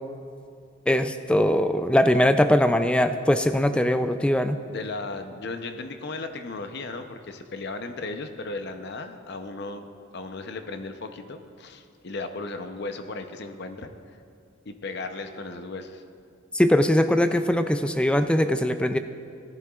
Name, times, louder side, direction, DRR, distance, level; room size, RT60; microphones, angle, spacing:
voice 1, 0.9-4.6 16.5-19.0, left 1 dB, 5° left, 9 dB, 0.3 m, -21 dB
voice 2, 4.7-9.8 10.1-13.9 14.6-16.0, left 3 dB, 55° left, 7 dB, 0.7 m, -36 dB
18.0 x 10.5 x 2.4 m, 2.4 s
head